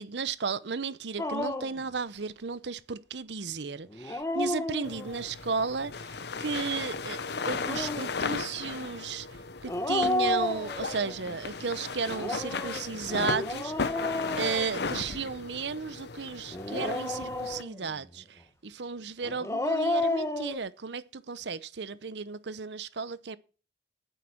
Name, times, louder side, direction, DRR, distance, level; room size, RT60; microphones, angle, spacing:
voice 1, 0.0-9.3 9.6-14.1 14.4-23.4, right 5 dB, 70° right, 0.8 m, -34 dB
Dog, 1.2-1.8 3.9-5.3 7.4-8.1 9.7-11.1 12.1-15.2 16.5-17.9 19.2-20.6, left 2 dB, 15° left, 1.1 m, -32 dB
sound 1, 4.8-17.6, left 4 dB, 65° left, 0.9 m, -36 dB
9.3 x 8.3 x 7.0 m
head